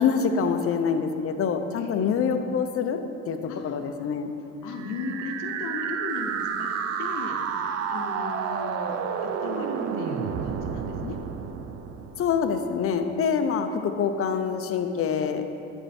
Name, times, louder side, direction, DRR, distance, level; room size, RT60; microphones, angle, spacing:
voice 1, 0.0-3.0 3.3-3.4 3.6-4.3 12.2-15.4, left 6 dB, 45° left, 7 dB, 0.7 m, -25 dB
voice 2, 1.8-2.1 3.5-4.1 4.6-11.2, left 4 dB, 85° left, 4 dB, 0.9 m, -37 dB
sound 1, 4.7-12.7, right 7 dB, 55° right, 0.6 m, -31 dB
11.0 x 4.5 x 4.3 m, 2.9 s
supercardioid pair, 85°, 31 cm